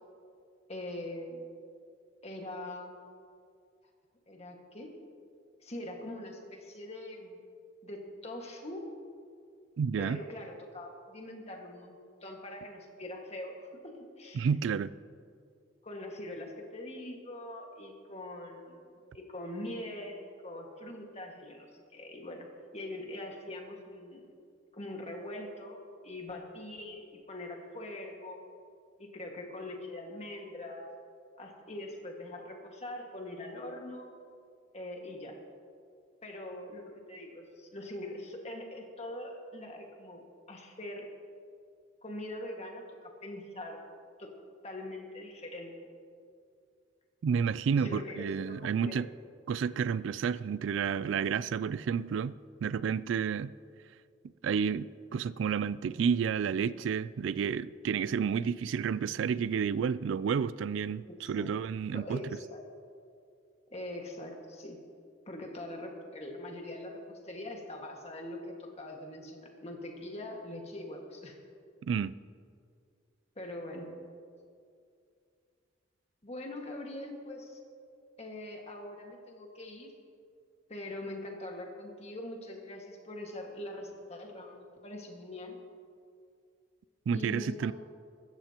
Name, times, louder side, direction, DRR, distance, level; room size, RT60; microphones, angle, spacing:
voice 1, 0.7-1.4 2.2-3.0 4.3-4.9 5.6-7.4 7.8-8.9 10.0-12.0 12.2-14.5 15.8-18.9 19.1-22.5 22.7-24.2 24.7-28.4 29.0-30.9 31.4-34.1 34.7-35.4 36.2-40.2 40.5-41.1 42.0-43.8 44.2-44.3 44.6-45.7 47.7-49.1 61.1-61.5 61.9-62.6 63.7-64.8 65.3-71.4 73.4-73.9 76.2-77.6 78.2-79.9 80.7-85.6 87.1-87.7, left 1 dB, 35° left, 1 dB, 1.8 m, -42 dB
voice 2, 9.8-10.2 14.3-14.9 47.2-49.1 49.5-52.3 52.6-53.5 54.4-62.2 71.9-72.1 87.1-87.7, right 6 dB, 65° right, 17 dB, 0.3 m, -30 dB
23.5 x 13.5 x 3.0 m, 2.3 s
head